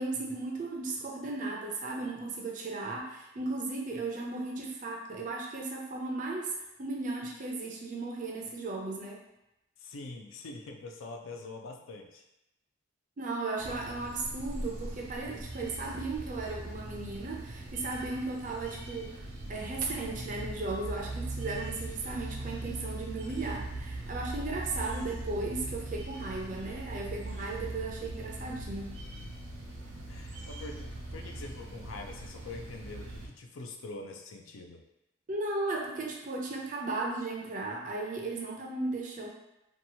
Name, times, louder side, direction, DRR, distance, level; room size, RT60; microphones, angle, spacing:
voice 1, 0.0-9.2 13.2-28.9 35.3-39.3, right 3 dB, 40° right, 0 dB, 0.4 m, -36 dB
voice 2, 9.8-12.3 29.7-29.8 30.1-34.8, left 3 dB, 75° left, 3 dB, 0.4 m, -44 dB
sound 1, 13.6-33.3, right 1 dB, 85° right, 0.7 m, -40 dB
2.9 x 2.3 x 2.7 m, 0.89 s
head